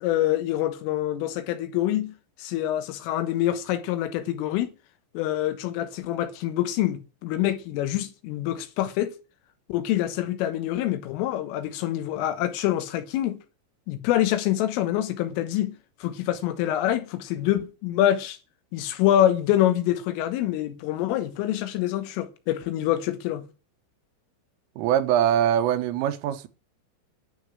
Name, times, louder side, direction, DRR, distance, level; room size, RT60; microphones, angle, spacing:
voice 1, 0.0-2.1 2.4-4.7 5.2-9.2 9.7-13.4 13.9-18.4 18.7-23.4, left 12 dB, 80° left, 3.8 m, -26 dB
voice 2, 24.8-26.5, right 10 dB, 85° right, 3.7 m, -23 dB
11.5 x 6.6 x 9.0 m
omnidirectional pair, 5.8 m